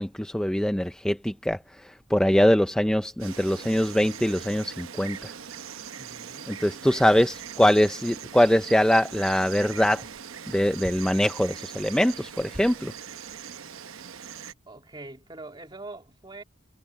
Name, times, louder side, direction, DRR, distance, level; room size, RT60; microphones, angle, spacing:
voice 1, 0.0-5.3 6.5-10.0 10.5-12.9, equal, 5° left, 0.4 m, -23 dB
Insect, 3.2-14.5, right 8 dB, 85° right, 0.9 m, -41 dB
voice 2, 6.0-6.6 14.7-16.4, right 2 dB, 20° right, 2.6 m, -43 dB
head